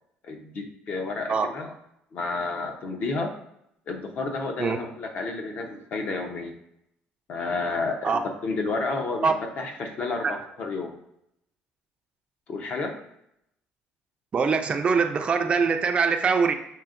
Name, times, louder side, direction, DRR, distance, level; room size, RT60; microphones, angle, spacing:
voice 1, 0.2-1.7 2.1-3.3 3.9-6.6 7.3-10.9 12.5-12.9, left 3 dB, 50° left, 4 dB, 0.7 m, -31 dB
voice 2, 14.3-16.5, right 5 dB, 30° right, 5 dB, 0.4 m, -23 dB
5.6 x 2.7 x 2.5 m, 0.77 s
cardioid pair, 115°, 4 cm